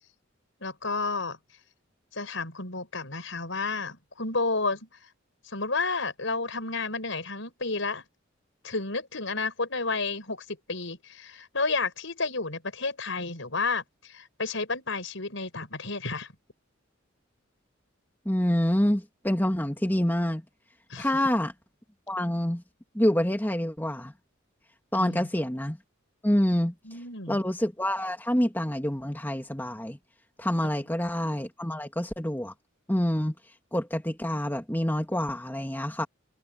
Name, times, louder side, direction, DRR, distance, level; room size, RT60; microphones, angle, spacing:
voice 1, 0.6-1.4 2.1-5.1 5.4-8.0 8.6-16.3 20.9-21.1 25.0-25.3 26.8-27.4, left 3 dB, 65° left, 6.4 m, -31 dB
voice 2, 18.3-20.4 21.0-21.5 22.1-22.6 22.9-24.1 24.9-25.8 26.2-26.7 27.3-30.0 30.4-32.5 32.9-33.3 33.7-36.1, left 1 dB, 10° left, 2.3 m, -27 dB
head